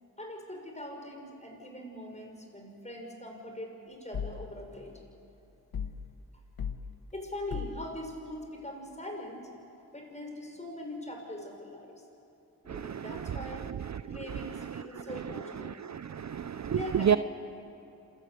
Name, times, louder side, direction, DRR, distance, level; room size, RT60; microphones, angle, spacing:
voice 1, 0.2-4.9 7.1-9.5 9.9-11.9 12.6-13.6 14.1-15.8 16.7-17.2, left 1 dB, 20° left, 2 dB, 5.9 m, -42 dB
sound 1, 4.1-4.5 5.7-6.1 6.6-6.8 7.5-7.8, left 7 dB, 70° left, 1.2 m, -36 dB
voice 2, 12.7-13.0 13.9-14.4 14.7-15.0 15.6-17.2, right 8 dB, 45° right, 14 dB, 0.6 m, -31 dB
27.0 x 14.0 x 7.9 m, 2.8 s
cardioid pair, 45°, 38 cm